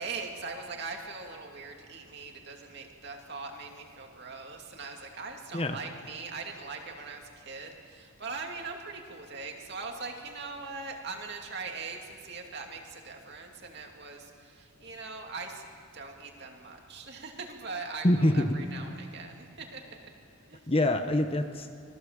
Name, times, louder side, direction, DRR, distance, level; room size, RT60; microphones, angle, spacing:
voice 1, 0.0-15.6 15.9-20.1 20.4-20.6, right 4 dB, 50° right, 2 dB, 2.6 m, -41 dB
voice 2, 18.0-18.6 20.7-21.8, left 1 dB, 25° left, 7 dB, 0.9 m, -25 dB
26.0 x 18.5 x 7.6 m, 2.5 s
head